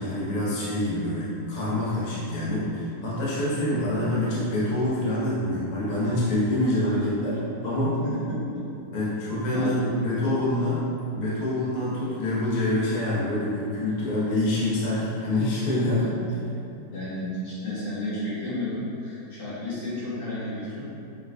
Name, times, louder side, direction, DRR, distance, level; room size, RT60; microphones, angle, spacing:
voice 1, 0.0-8.0 8.9-10.8 11.1-16.0, left 1 dB, 40° left, -8 dB, 0.6 m, -26 dB
voice 2, 16.9-20.8, left 1 dB, 75° left, -10 dB, 2.0 m, -32 dB
5.7 x 3.1 x 2.2 m, 2.7 s
omnidirectional pair, 2.1 m